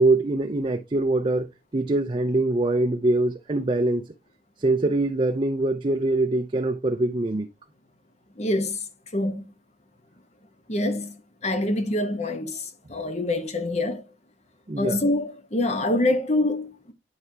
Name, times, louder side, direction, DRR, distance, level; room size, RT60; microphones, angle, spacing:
voice 1, 0.0-1.5 1.7-4.1 4.6-7.5 14.7-15.0, right 2 dB, 30° right, 0.5 m, -23 dB
voice 2, 8.4-8.8 9.1-9.4 10.7-11.2 11.4-14.0 14.8-16.9, left 1 dB, 40° left, 1.0 m, -25 dB
9.7 x 4.8 x 2.8 m
head